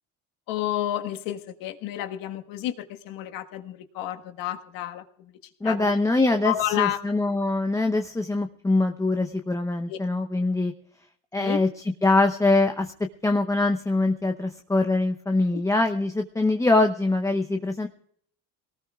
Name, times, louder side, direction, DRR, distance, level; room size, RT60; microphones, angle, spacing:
voice 1, 0.5-5.0 5.6-5.9 6.4-7.0 9.9-10.0 11.4-11.6 15.5-15.6, left 12 dB, 65° left, 6 dB, 1.6 m, -30 dB
voice 2, 5.6-10.7 11.3-12.9 13.2-17.9, left 2 dB, 10° left, 5 dB, 0.8 m, -23 dB
22.5 x 19.0 x 2.4 m, 0.64 s
supercardioid pair, 115°, 36 cm